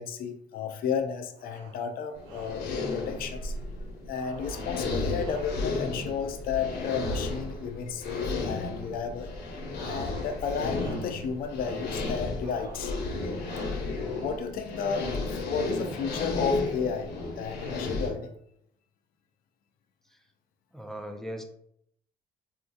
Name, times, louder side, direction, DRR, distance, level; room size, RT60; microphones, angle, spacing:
voice 1, 0.0-2.7 2.9-3.5 4.1-9.3 9.8-12.9 14.2-18.3, left 6 dB, 60° left, 6 dB, 0.5 m, -33 dB
sound 1, 1.3-1.9 2.2-2.9 4.1-5.9 7.0-7.7 8.0-8.5 9.7-10.5 10.7-11.3 12.4-13.0 13.4-14.0, right 4 dB, 85° right, 0.6 m, -49 dB
sound 2, 2.2-18.1, left 3 dB, 75° left, 0.9 m, -33 dB
voice 2, 20.7-21.4, equal, ahead, 4 dB, 0.4 m, -38 dB
3.5 x 2.7 x 2.4 m, 0.73 s
cardioid pair, 110°, 17 cm